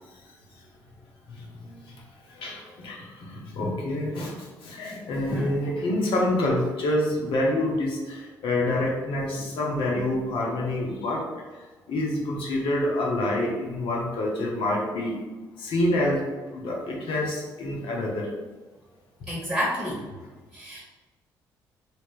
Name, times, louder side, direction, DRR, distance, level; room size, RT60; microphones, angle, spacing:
voice 1, 1.3-2.0 2.3-11.2 11.9-15.2 15.6-16.2 16.5-18.3, left 1 dB, 65° left, -2 dB, 0.8 m, -27 dB
voice 2, 19.3-20.0 20.5-20.8, equal, ahead, -4 dB, 1.2 m, -30 dB
3.3 x 2.9 x 2.5 m, 1.2 s
hypercardioid pair, 50°, 10 cm